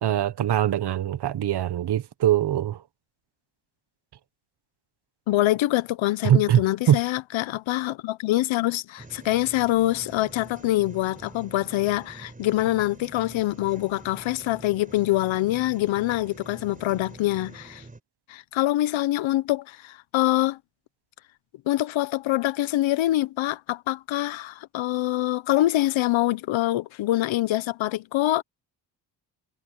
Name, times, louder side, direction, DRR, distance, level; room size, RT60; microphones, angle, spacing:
voice 1, 0.0-2.8 6.2-6.6 6.9-7.0, right 11 dB, 60° right, 1.4 m, -22 dB
voice 2, 5.3-17.8 18.3-20.6 21.7-28.4, left 16 dB, 80° left, 1.0 m, -25 dB
sound 1, 9.0-18.0, right 2 dB, 15° right, 5.1 m, -46 dB
cardioid pair, 105°, 46 cm